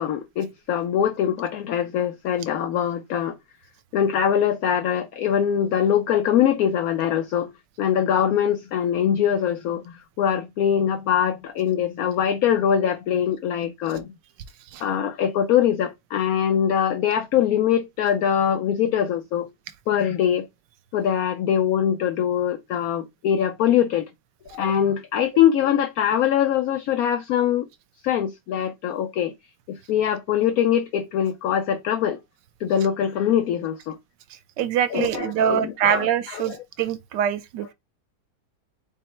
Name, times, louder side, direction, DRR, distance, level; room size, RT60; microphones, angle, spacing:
voice 1, 0.0-3.4 3.9-7.5 7.8-14.1 14.8-19.5 19.9-20.5 20.9-24.1 24.5-27.7 28.0-29.3 29.7-32.2 32.6-34.0 34.9-36.6, left 9 dB, 70° left, 0.9 m, -23 dB
voice 2, 34.6-37.7, right 10 dB, 80° right, 1.2 m, -24 dB
5.4 x 2.0 x 4.2 m
omnidirectional pair, 1.9 m